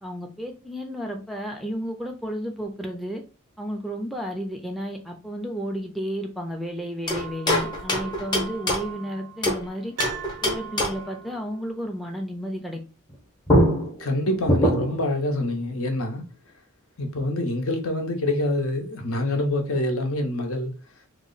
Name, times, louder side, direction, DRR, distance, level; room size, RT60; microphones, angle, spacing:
voice 1, 0.0-3.2 3.6-9.9 10.4-12.8, equal, ahead, 0.4 m, -32 dB
sound 1, 7.1-9.7 10.0-11.2 13.1-13.2 13.5-15.1, equal, 20° left, 0.7 m, -24 dB
Piano, 9.9-11.2 11.5-11.6, right 9 dB, 80° right, 0.4 m, -37 dB
voice 2, 14.0-16.2 17.0-20.7, left 1 dB, 75° left, 0.8 m, -26 dB
2.9 x 2.0 x 3.8 m
head